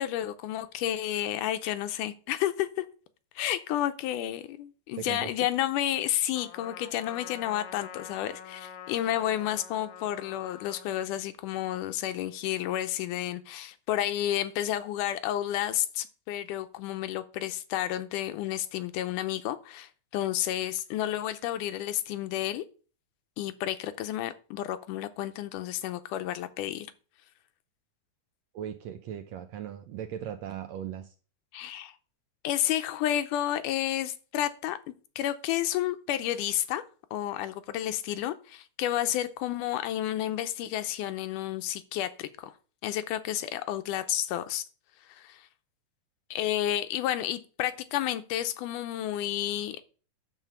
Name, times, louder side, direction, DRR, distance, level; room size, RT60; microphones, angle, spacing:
voice 1, 0.0-2.9 3.4-22.6 23.4-26.9 31.5-31.9 32.4-34.8 35.2-36.8 37.1-42.5 42.8-44.7 45.1-45.5 46.3-49.8, left 12 dB, 90° left, 2.2 m, -31 dB
voice 2, 5.0-5.3 28.5-31.1, right 10 dB, 80° right, 1.6 m, -38 dB
Trumpet, 6.3-11.0, left 8 dB, 65° left, 1.6 m, -46 dB
10.5 x 4.1 x 7.2 m
omnidirectional pair, 3.7 m